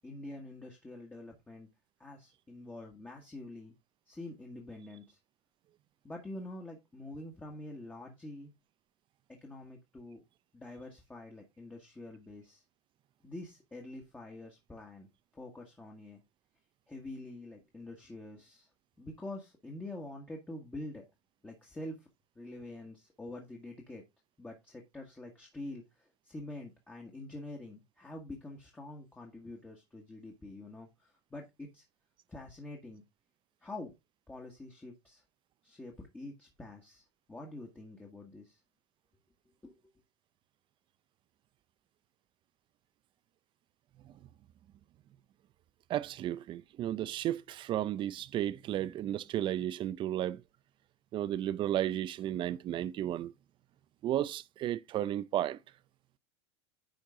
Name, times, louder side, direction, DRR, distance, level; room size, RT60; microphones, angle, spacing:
voice 1, 0.0-1.7 2.0-3.7 4.1-5.2 6.0-8.5 9.4-10.2 10.5-12.6 13.2-15.1 15.3-16.2 16.9-18.7 19.0-21.1 21.4-22.1 22.3-24.0 24.4-31.8 32.3-33.0 33.6-33.9 34.3-35.2 35.6-38.6 39.6-39.7, left 2 dB, 10° left, 1.6 m, -46 dB
voice 2, 45.9-50.4 51.1-53.3 54.0-55.6, right 12 dB, 35° right, 0.6 m, -33 dB
10.5 x 4.5 x 3.7 m
supercardioid pair, 135°, 15 cm